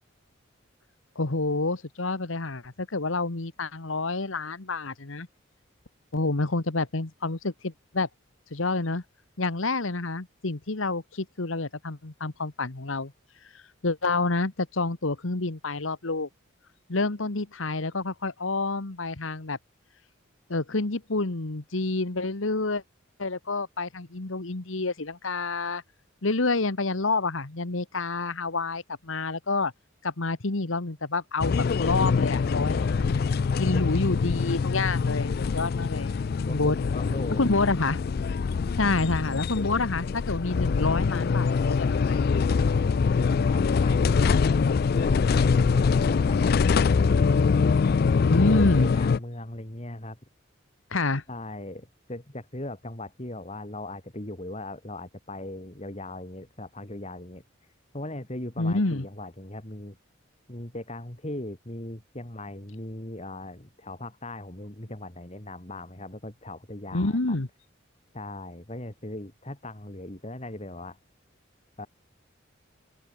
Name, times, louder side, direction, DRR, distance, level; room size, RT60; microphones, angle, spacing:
voice 1, 1.1-5.3 6.1-8.1 8.5-9.0 9.4-13.1 13.5-16.3 16.9-19.6 20.5-22.8 23.2-25.8 26.2-29.7 30.0-33.2 33.6-36.1 36.5-36.8 37.4-38.0 38.8-42.2 48.2-48.9 50.9-51.2 58.6-59.0 66.9-67.5, left 3 dB, 80° left, 1.5 m, -28 dB
sound 1, 31.4-49.2, left 5 dB, 50° left, 0.3 m, -24 dB
voice 2, 36.5-37.7 42.9-47.8 48.3-50.2 51.3-57.4 57.9-60.0 60.5-67.4 68.1-71.0 71.8-71.9, left 1 dB, 30° left, 3.0 m, -39 dB
open air
head